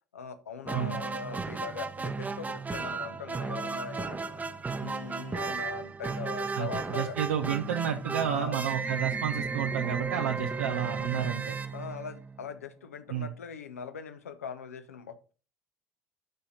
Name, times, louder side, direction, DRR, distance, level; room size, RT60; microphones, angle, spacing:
voice 1, 0.1-4.2 4.8-7.2 8.3-8.6 11.7-15.3, left 6 dB, 80° left, 10 dB, 0.8 m, -40 dB
sound 1, 0.6-12.5, right 4 dB, 20° right, 0.8 m, -34 dB
voice 2, 6.5-11.6 13.1-13.3, right 9 dB, 75° right, 5 dB, 0.6 m, -31 dB
12.0 x 4.2 x 3.9 m, 0.36 s
figure-of-eight pair, 60°, 8 cm